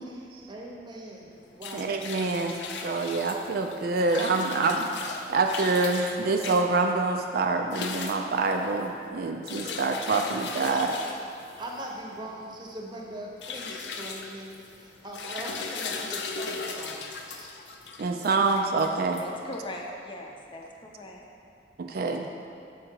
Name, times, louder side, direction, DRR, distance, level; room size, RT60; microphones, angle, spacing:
voice 1, 0.1-1.3 1.6-1.9 9.6-9.8 10.7-10.9 11.6-17.5, right 1 dB, 25° right, -1 dB, 0.8 m, -41 dB
sound 1, 1.3-19.8, left 4 dB, 70° left, 0.5 m, -38 dB
voice 2, 1.7-10.9 18.0-19.2 21.8-22.3, right 3 dB, 60° right, 4 dB, 0.4 m, -26 dB
voice 3, 19.2-21.2, left 1 dB, 30° left, 0 dB, 0.6 m, -40 dB
6.3 x 5.0 x 4.5 m, 2.4 s
head